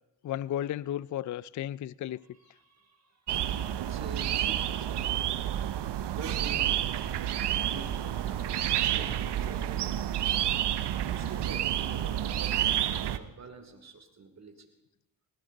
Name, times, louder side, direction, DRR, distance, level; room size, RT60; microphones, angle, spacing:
voice 1, 0.2-2.2, left 12 dB, 45° left, 0.4 m, -34 dB
voice 2, 2.3-3.2 3.7-5.1 5.9-7.2 7.6-10.3 11.1-14.7, right 4 dB, 35° right, 3.1 m, -47 dB
sound 1, 3.3-13.2, right 11 dB, 65° right, 0.9 m, -29 dB
sound 2, 7.0-13.2, left 2 dB, 85° left, 6.7 m, -51 dB
19.5 x 17.5 x 3.9 m
supercardioid pair, 60°, 45 cm